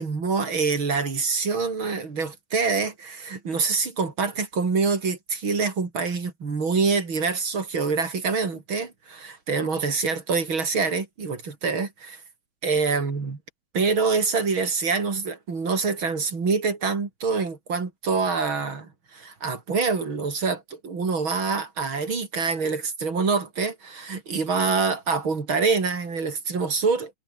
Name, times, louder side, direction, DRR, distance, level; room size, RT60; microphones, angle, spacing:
voice 1, 0.0-12.2 12.6-13.4 13.7-27.1, right 4 dB, 90° right, 4.4 m, -25 dB
omnidirectional pair, 2.2 m